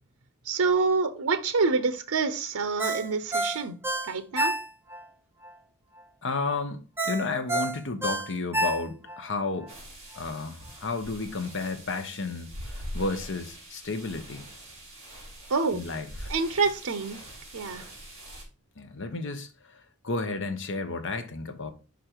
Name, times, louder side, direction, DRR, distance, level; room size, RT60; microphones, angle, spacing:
voice 1, 0.5-3.8 4.1-4.5 15.5-15.8 16.3-17.2 17.5-17.8, right 4 dB, 85° right, 0.7 m, -26 dB
Ringtone, 2.8-5.0 5.4-5.5 7.0-9.2 9.6-9.7, right 1 dB, 10° right, 0.9 m, -29 dB
voice 2, 6.2-9.7 10.1-14.4 15.7-16.3 18.8-19.5 20.0-21.7, left 3 dB, 60° left, 0.9 m, -32 dB
sound 1, 9.7-18.4, equal, 30° right, 3.2 m, -43 dB
5.3 x 5.1 x 4.5 m
head